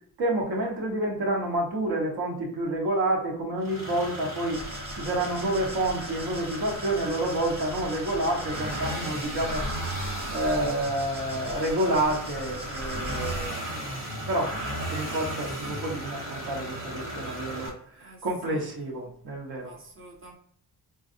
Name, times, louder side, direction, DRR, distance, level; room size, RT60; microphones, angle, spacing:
voice 1, 0.2-4.7 5.0-13.8 14.2-14.6 14.9-19.7, right 1 dB, 70° right, -1 dB, 1.1 m, -29 dB
sound 1, 3.6-17.7, right 1 dB, 90° right, 1.4 m, -35 dB
sound 2, 4.5-13.5, equal, 15° right, 0.4 m, -42 dB
voice 2, 18.0-18.7 19.6-20.3, right 1 dB, 30° right, 0 dB, 0.9 m, -48 dB
3.8 x 2.4 x 2.6 m, 0.64 s
cardioid pair, 120°, 39 cm